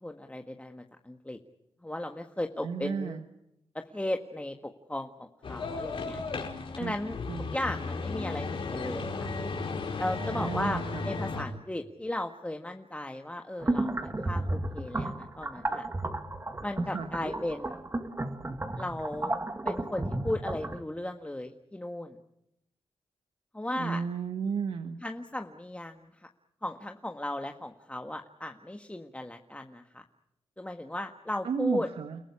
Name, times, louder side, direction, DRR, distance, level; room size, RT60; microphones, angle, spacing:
voice 1, 0.0-1.4 1.8-3.2 3.7-6.2 6.7-7.2 7.5-9.3 10.0-15.9 16.6-17.8 18.8-19.3 19.6-22.2 23.5-24.0 25.0-26.3 26.6-30.0 30.6-31.9, left 1 dB, 15° left, 4 dB, 1.7 m, -36 dB
voice 2, 2.6-3.2 6.8-6.9 7.3-7.6 10.3-11.1 16.9-17.1 23.7-25.0 31.4-32.2, right 6 dB, 80° right, 8 dB, 1.3 m, -33 dB
sound 1, 5.4-11.4, left 3 dB, 65° left, 4.5 m, -35 dB
sound 2, 13.6-20.8, right 2 dB, 25° right, 2.3 m, -33 dB
29.5 x 15.0 x 10.0 m, 0.84 s
cardioid pair, 55°, 10 cm